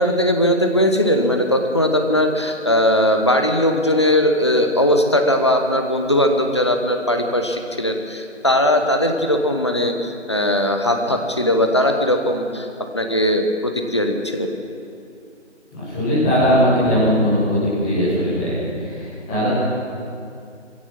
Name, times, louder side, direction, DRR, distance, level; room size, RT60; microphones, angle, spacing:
voice 1, 0.0-12.7 12.9-14.5, left 1 dB, 25° left, 4 dB, 1.1 m, -19 dB
voice 2, 15.7-19.5, equal, 5° left, -13 dB, 1.5 m, -19 dB
21.5 x 16.0 x 7.5 m, 2.5 s
figure-of-eight pair, 165°, 36 cm